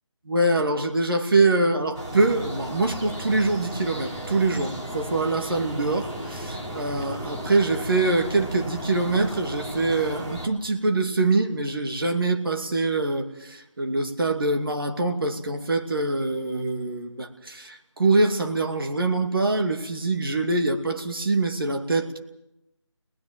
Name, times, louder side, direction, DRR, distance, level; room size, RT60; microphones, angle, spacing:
voice 1, 0.3-22.2, right 2 dB, 50° right, 5 dB, 2.5 m, -24 dB
sound 1, 1.9-10.5, equal, 10° right, 1.1 m, -35 dB
25.5 x 20.5 x 7.5 m, 0.88 s
figure-of-eight pair, 175°, 16 cm